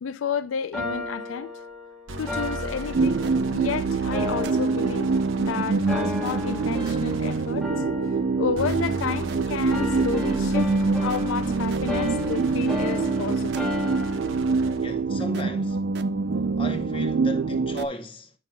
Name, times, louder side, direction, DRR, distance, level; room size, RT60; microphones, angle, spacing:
voice 1, 0.0-1.5 2.2-5.1 5.4-7.7 8.4-10.7 11.0-13.5, left 6 dB, 85° left, 0.4 m, -31 dB
sound 1, 0.7-3.7 4.1-5.5 5.9-7.3 7.6-9.3 9.7-14.4, left 2 dB, ahead, 1.1 m, -33 dB
sound 2, 2.1-7.7 8.5-15.0, right 3 dB, 85° right, 0.9 m, -36 dB
sound 3, 2.9-17.9, right 4 dB, 55° right, 0.4 m, -25 dB
voice 2, 14.7-15.8 16.6-18.3, equal, 25° left, 0.8 m, -35 dB
8.7 x 5.9 x 2.2 m
head